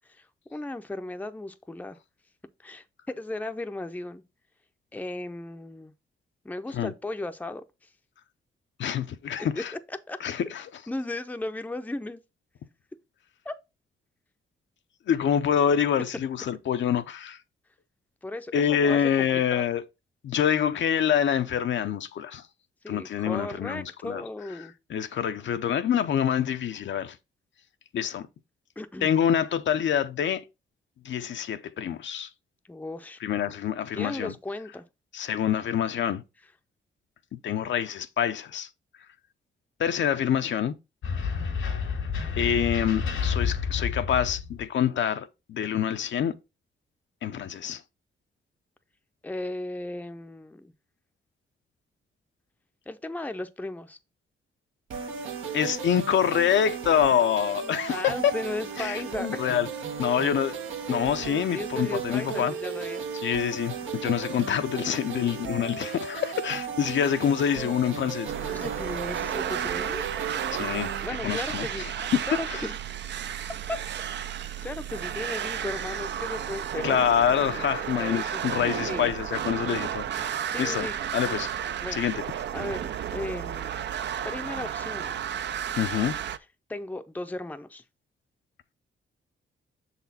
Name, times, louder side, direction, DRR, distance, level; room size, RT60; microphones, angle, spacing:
voice 1, 0.5-2.0 2.6-4.2 4.9-5.9 6.4-7.6 9.6-9.7 9.9-10.2 10.9-12.2 13.4-13.6 18.2-19.7 22.8-24.7 28.8-29.1 32.7-33.2 33.9-34.8 49.2-50.7 52.9-54.0 57.6-59.6 61.5-63.0 68.5-70.0 71.0-71.8 72.3-72.8 73.0-73.1 73.7-73.8 74.6-77.0 78.0-79.1 80.5-81.0 81.8-82.0 82.5-83.7 84.2-85.2 86.7-87.8, left 2 dB, 10° left, 0.5 m, -36 dB
voice 2, 8.8-9.7 10.2-10.6 15.1-17.4 18.5-19.8 20.2-22.4 22.9-24.2 24.9-27.2 27.9-28.3 29.0-30.5 31.0-32.3 33.2-34.3 35.1-36.2 37.4-38.7 39.8-40.7 42.4-46.4 47.2-47.8 55.5-58.3 58.8-59.7 60.0-60.6 60.9-62.5 63.2-68.5 70.5-70.9 71.2-71.9 72.5-72.6 76.8-81.5 81.9-82.2 85.8-86.1, left 9 dB, 70° left, 0.6 m, -26 dB
sound 1, 41.0-44.7, left 6 dB, 90° left, 1.8 m, -29 dB
sound 2, 54.9-71.1, right 6 dB, 85° right, 1.1 m, -35 dB
sound 3, 68.3-86.4, right 9 dB, 60° right, 0.5 m, -33 dB
6.6 x 4.2 x 4.1 m
cardioid pair, 90°, 20 cm